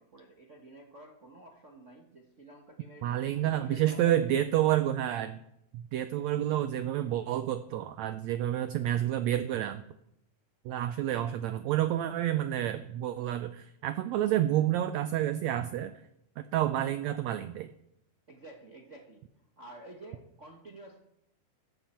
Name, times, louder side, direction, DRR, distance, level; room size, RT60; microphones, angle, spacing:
voice 1, 0.0-3.1 3.3-4.4 6.3-6.5 18.3-19.2 19.6-21.0, right 2 dB, 55° right, 1 dB, 0.8 m, -51 dB
voice 2, 3.0-5.4 5.7-9.8 10.6-15.9 16.4-17.7, right 12 dB, 80° right, 11 dB, 1.7 m, -29 dB
15.0 x 14.0 x 4.4 m, 0.81 s
omnidirectional pair, 3.6 m